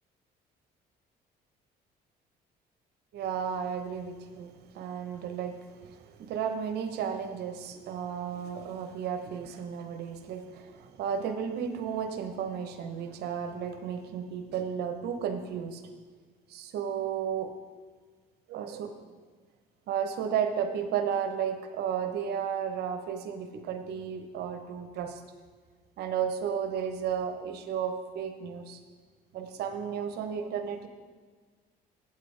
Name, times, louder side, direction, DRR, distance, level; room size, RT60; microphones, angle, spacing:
voice 1, 3.1-15.8 16.5-17.5 18.5-18.9 19.9-25.2 26.0-28.8 29.3-30.9, right 7 dB, 75° right, 7 dB, 0.9 m, -33 dB
8.2 x 7.6 x 5.0 m, 1.5 s
cardioid pair, 110°, 17 cm